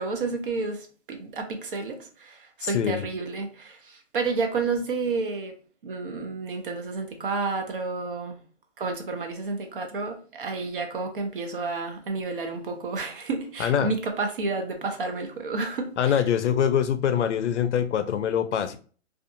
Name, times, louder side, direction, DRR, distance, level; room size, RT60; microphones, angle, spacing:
voice 1, 0.0-5.5 5.8-8.4 8.8-16.2, right 3 dB, 45° right, 0.5 m, -30 dB
voice 2, 2.6-3.0 13.6-13.9 16.0-18.8, left 8 dB, 65° left, 0.5 m, -24 dB
2.5 x 2.4 x 2.5 m
hypercardioid pair, 160°, 37 cm